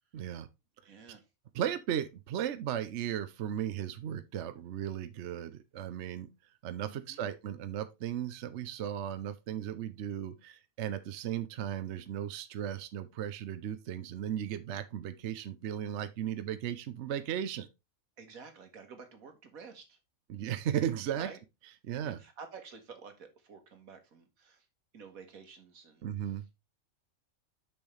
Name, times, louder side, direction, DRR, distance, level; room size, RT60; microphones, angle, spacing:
voice 1, 0.1-0.5 1.5-6.3 6.6-17.7 20.3-21.3 21.8-22.2 26.0-26.4, right 10 dB, 60° right, 0.9 m, -36 dB
voice 2, 0.8-1.2 6.9-7.3 18.2-20.0 21.1-21.4 22.0-24.7 24.9-26.0, right 5 dB, 85° right, 1.8 m, -50 dB
6.9 x 6.2 x 3.3 m
omnidirectional pair, 1.4 m